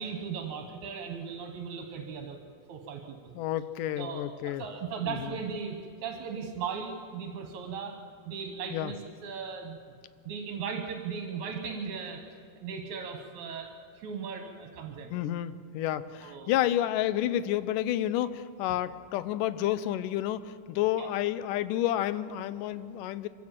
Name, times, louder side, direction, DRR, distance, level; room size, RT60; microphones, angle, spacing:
voice 1, 0.0-2.4 2.7-3.3 4.0-8.0 8.3-9.8 10.3-15.2 16.2-16.5 21.0-21.1, right 6 dB, 65° right, 4 dB, 2.5 m, -37 dB
voice 2, 3.4-4.6 5.0-5.3 8.7-8.9 15.1-23.3, left 12 dB, 80° left, 14 dB, 2.2 m, -30 dB
25.0 x 16.0 x 7.4 m, 2.2 s
omnidirectional pair, 3.8 m